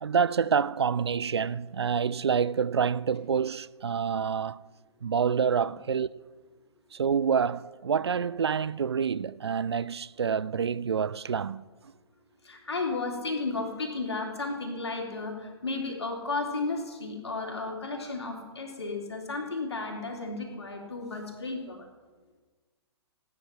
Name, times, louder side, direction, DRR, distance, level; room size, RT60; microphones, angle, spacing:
voice 1, 0.0-4.6 5.0-6.2 6.9-11.6, right 6 dB, 65° right, 0.4 m, -27 dB
voice 2, 12.4-21.9, left 3 dB, 65° left, 3.5 m, -33 dB
17.0 x 9.6 x 5.9 m
figure-of-eight pair, 120°, 15 cm